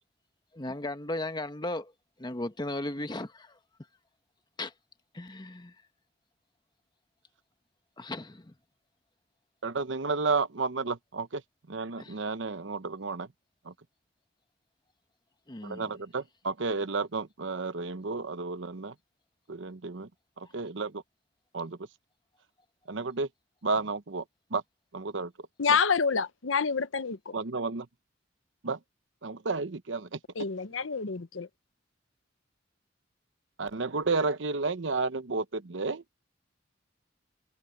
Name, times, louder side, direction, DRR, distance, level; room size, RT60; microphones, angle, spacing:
voice 1, 0.5-1.9 2.2-3.5 4.6-4.7 5.1-5.7 8.0-8.5 12.0-12.2 15.5-15.9, left 2 dB, 25° left, 1.1 m, -36 dB
voice 2, 9.6-11.4 11.7-13.3 13.6-13.7 15.6-18.9 19.5-20.1 20.4-21.0 21.5-21.8 22.9-23.3 23.6-24.2 24.5-24.6 24.9-25.3 27.3-27.9 28.6-28.8 29.2-30.2 33.6-36.0, right 4 dB, 70° right, 0.9 m, -32 dB
voice 3, 25.6-27.3 30.4-31.5, left 5 dB, 85° left, 0.9 m, -28 dB
head